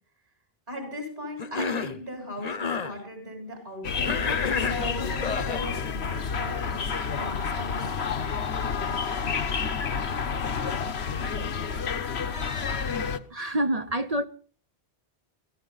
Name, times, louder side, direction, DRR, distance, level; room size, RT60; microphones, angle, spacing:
voice 1, 0.7-4.2 4.6-6.8 7.1-8.3, left 1 dB, 55° right, 3 dB, 7.9 m, -39 dB
Cough, 1.4-2.0 2.4-2.9 4.0-5.7, left 5 dB, 40° left, 0.9 m, -30 dB
sound 1, 3.8-13.2, left 6 dB, 85° left, 1.3 m, -29 dB
voice 2, 13.3-14.3, right 1 dB, 40° right, 8 dB, 0.9 m, -27 dB
22.5 x 15.0 x 4.0 m, 0.43 s
omnidirectional pair, 1.1 m